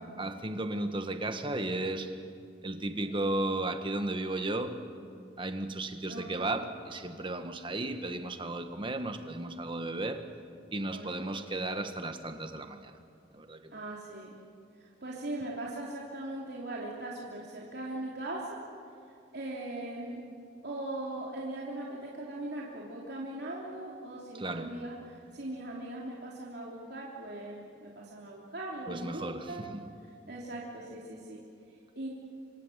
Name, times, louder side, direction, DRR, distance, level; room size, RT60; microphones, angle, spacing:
voice 1, 0.0-2.2 2.6-4.8 5.4-10.3 10.7-13.0 13.3-13.7 24.3-24.7 28.9-29.8, right 2 dB, 25° right, 7 dB, 1.6 m, -34 dB
voice 2, 3.0-3.4 6.1-6.5 10.9-11.4 13.7-14.3 14.8-18.6 19.3-20.2 20.6-29.6 30.3-31.4 31.9-32.1, right 1 dB, 60° right, -4 dB, 3.3 m, -40 dB
26.5 x 25.0 x 7.5 m, 2.3 s
head